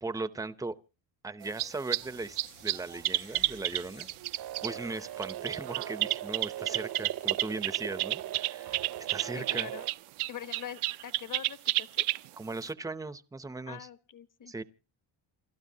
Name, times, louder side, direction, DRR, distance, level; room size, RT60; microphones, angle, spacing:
voice 1, 0.0-0.8 1.2-4.1 4.6-9.7 12.4-13.9 14.5-14.6, right 3 dB, 5° right, 0.6 m, -38 dB
sound 1, 1.4-2.1 2.4-4.9 5.2-12.3 12.6-12.7, right 17 dB, 80° right, 0.7 m, -31 dB
sound 2, 2.0-6.2, left 9 dB, 90° left, 2.5 m, -58 dB
sound 3, 4.4-9.9, right 12 dB, 45° right, 0.8 m, -40 dB
voice 2, 9.3-9.9 10.3-12.1 13.7-14.5, left 9 dB, 40° left, 1.1 m, -43 dB
28.5 x 12.5 x 2.7 m
cardioid pair, 130°, 49 cm